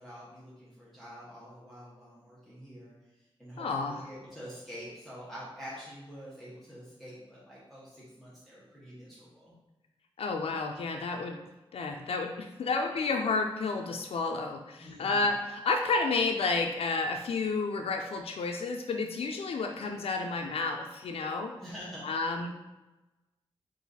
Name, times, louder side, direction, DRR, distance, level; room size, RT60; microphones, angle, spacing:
voice 1, 0.0-9.5 14.8-15.3 21.6-22.1, equal, ahead, -10 dB, 1.1 m, -47 dB
voice 2, 3.6-4.0 10.2-11.4 11.7-21.5 22.0-22.5, left 3 dB, 85° left, 3 dB, 0.4 m, -31 dB
3.9 x 2.6 x 4.0 m, 1.0 s
wide cardioid pair, 130°, 10 cm